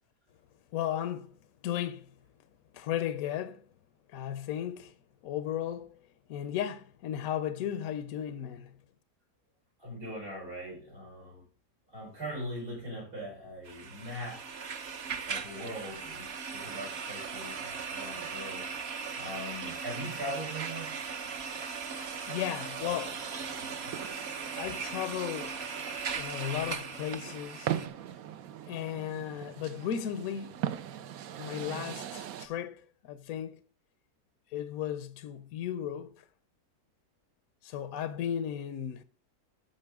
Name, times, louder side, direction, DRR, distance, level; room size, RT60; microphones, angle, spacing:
voice 1, 0.7-1.3 1.6-2.1 2.7-3.6 4.1-5.0 5.2-6.0 6.3-8.7 22.3-23.3 24.5-25.7 26.2-27.7 28.6-30.6 31.4-33.6 34.5-36.3 37.6-39.0, left 10 dB, 70° left, 1.0 m, -35 dB
voice 2, 9.8-11.4 11.9-14.4 15.3-18.7 19.1-21.0 23.6-24.0, equal, 85° right, 5.1 m, -41 dB
sound 1, 13.6-27.9, right 5 dB, 50° right, 1.0 m, -38 dB
sound 2, 22.9-32.5, right 10 dB, 70° right, 1.0 m, -41 dB
15.5 x 5.5 x 3.5 m
omnidirectional pair, 1.6 m